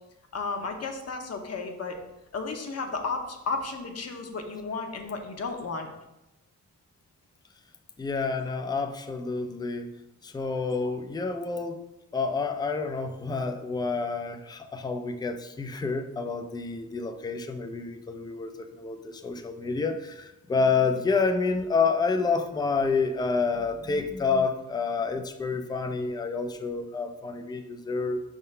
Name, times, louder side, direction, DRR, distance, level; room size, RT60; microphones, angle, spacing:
voice 1, 0.3-2.0 2.3-5.9, left 4 dB, 50° left, 4 dB, 0.9 m, -33 dB
voice 2, 8.0-9.9 10.2-11.8 12.1-28.2, left 4 dB, 15° left, 7 dB, 0.4 m, -28 dB
5.4 x 3.7 x 5.4 m, 0.94 s
wide cardioid pair, 140°, 32 cm